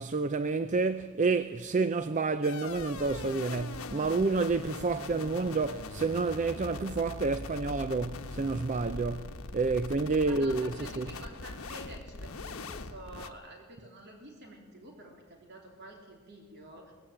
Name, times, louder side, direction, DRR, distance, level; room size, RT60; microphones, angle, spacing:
voice 1, 0.0-11.1, right 3 dB, 35° right, 0.5 m, -29 dB
sound 1, 2.4-13.3, left 3 dB, 80° left, 1.1 m, -41 dB
voice 2, 10.2-16.9, right 1 dB, 50° right, 3.4 m, -49 dB
20.0 x 15.0 x 8.8 m
head